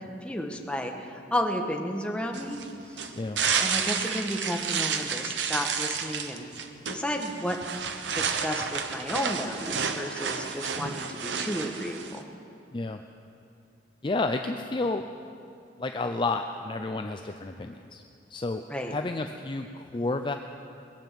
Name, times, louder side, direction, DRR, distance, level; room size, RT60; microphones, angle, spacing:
voice 1, 0.1-2.6 2.9-3.1 3.6-6.5 6.9-7.6 8.1-12.2 18.7-18.9, equal, 5° left, 2 dB, 1.2 m, -32 dB
sound 1, 2.3-12.2, right 6 dB, 90° right, 1.0 m, -31 dB
voice 2, 14.0-15.0 15.8-18.0 18.3-20.3, left 3 dB, 30° left, 5 dB, 0.5 m, -31 dB
20.5 x 8.9 x 7.5 m, 2.6 s
head